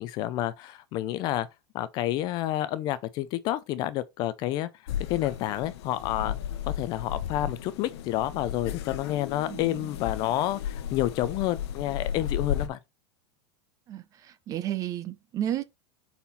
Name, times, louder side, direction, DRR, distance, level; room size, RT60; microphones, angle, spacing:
voice 1, 0.0-1.5 1.7-4.7 5.1-6.4 6.7-12.8, left 14 dB, 30° left, 0.4 m, -29 dB
sound 1, 4.9-12.7, left 9 dB, 60° left, 1.0 m, -34 dB
voice 2, 9.5-9.9 13.9-15.6, right 11 dB, 25° right, 0.5 m, -33 dB
5.5 x 4.3 x 4.1 m
supercardioid pair, 165°, 15 cm